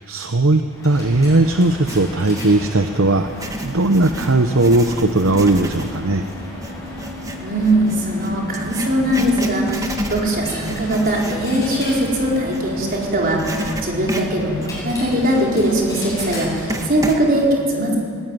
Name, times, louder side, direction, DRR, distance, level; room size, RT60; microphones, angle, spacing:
voice 1, 0.0-6.3, right 2 dB, 60° right, 7 dB, 0.9 m, -17 dB
Coin (dropping), 0.6-17.3, left 1 dB, 15° left, 7.9 m, -34 dB
Writing, 1.6-2.6 3.2-13.0 13.4-17.2, right 1 dB, 15° right, 1.6 m, -31 dB
voice 2, 7.4-18.0, right 1 dB, 40° right, -2 dB, 4.6 m, -20 dB
21.0 x 18.5 x 9.2 m, 2.2 s
head